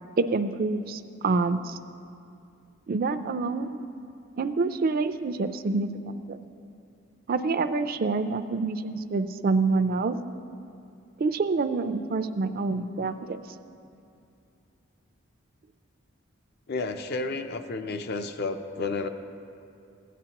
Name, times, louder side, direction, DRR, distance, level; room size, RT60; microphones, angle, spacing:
voice 1, 0.2-1.8 2.9-3.8 4.4-6.4 7.3-10.2 11.2-13.4, right 3 dB, 45° right, 9 dB, 0.4 m, -27 dB
voice 2, 16.7-19.1, left 3 dB, 55° left, 8 dB, 0.5 m, -31 dB
16.5 x 9.2 x 2.9 m, 2.6 s
head